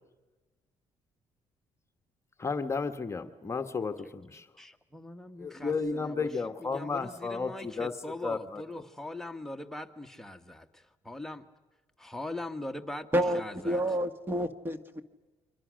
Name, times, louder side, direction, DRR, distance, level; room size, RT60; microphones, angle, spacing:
voice 1, 2.4-4.5 5.4-7.9 8.2-8.6, left 4 dB, 25° left, 7 dB, 1.2 m, -33 dB
voice 2, 4.6-6.3 6.6-11.5 12.0-13.1 13.3-13.8, left 1 dB, 5° left, 5 dB, 1.4 m, -41 dB
voice 3, 13.1-15.0, equal, 20° right, 11 dB, 1.7 m, -29 dB
30.0 x 24.5 x 6.4 m, 1.2 s
cardioid pair, 105°, 11 cm